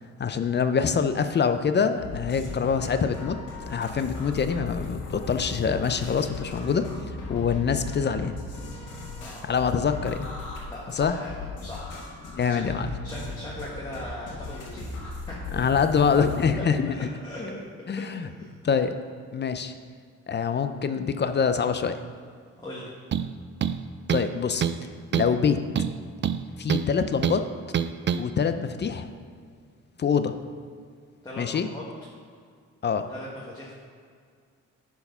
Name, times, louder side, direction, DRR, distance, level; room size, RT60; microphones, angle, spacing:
voice 1, 0.2-3.4 3.6-8.4 9.4-10.3 10.9-11.2 12.4-12.9 15.5-16.9 17.9-18.3 18.6-19.0 19.3-19.7 20.3-22.0 24.1-25.6 26.6-27.4 28.2-29.1 30.0-30.3 31.4-31.7 32.8-33.1, left 6 dB, 35° left, 9 dB, 0.6 m, -25 dB
sound 1, 2.0-16.5, left 3 dB, 85° left, 2.0 m, -37 dB
voice 2, 9.2-9.6 10.6-11.9 12.5-12.6 13.0-15.5 16.9-17.6 17.9-18.1 18.4-18.6 22.6-22.9 31.2-31.9 32.9-33.7, left 1 dB, 15° left, -5 dB, 1.6 m, -40 dB
sound 2, 23.1-23.3 23.6-24.3 24.6-24.8 25.1-25.4 25.7-26.9 27.2-27.4 27.7-28.2, right 8 dB, 40° right, 0.4 m, -26 dB
9.9 x 4.7 x 5.4 m, 2.1 s
cardioid pair, 90°, 30 cm